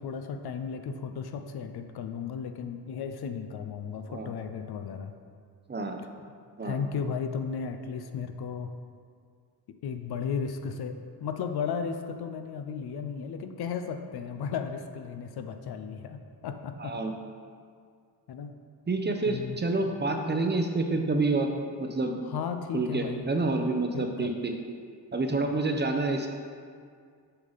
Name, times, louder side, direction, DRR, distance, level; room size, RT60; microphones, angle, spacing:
voice 1, 0.0-5.1 6.6-8.7 9.8-16.9 18.3-18.5 19.2-19.6 22.3-23.2 23.9-24.3, left 6 dB, 60° left, 7 dB, 0.7 m, -35 dB
voice 2, 5.7-6.0 6.6-6.8 16.8-17.1 18.9-21.5 21.8-22.1 22.7-24.5 25.1-26.3, right 3 dB, 25° right, 4 dB, 0.7 m, -28 dB
7.9 x 5.6 x 4.0 m, 2.1 s
cardioid pair, 85°, 42 cm